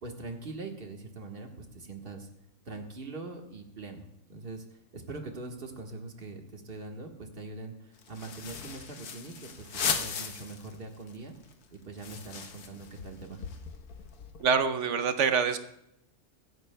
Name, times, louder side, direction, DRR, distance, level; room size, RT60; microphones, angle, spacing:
voice 1, 0.0-2.3 2.6-4.6 4.9-11.3 11.7-13.4, right 3 dB, 40° right, 2 dB, 1.5 m, -42 dB
sound 1, 8.0-10.8 11.1-11.2 11.4-14.6, left 6 dB, 85° left, 1.5 m, -37 dB
voice 2, 14.4-15.6, right 6 dB, 60° right, 10 dB, 0.9 m, -25 dB
23.5 x 10.5 x 2.2 m, 0.80 s
omnidirectional pair, 1.6 m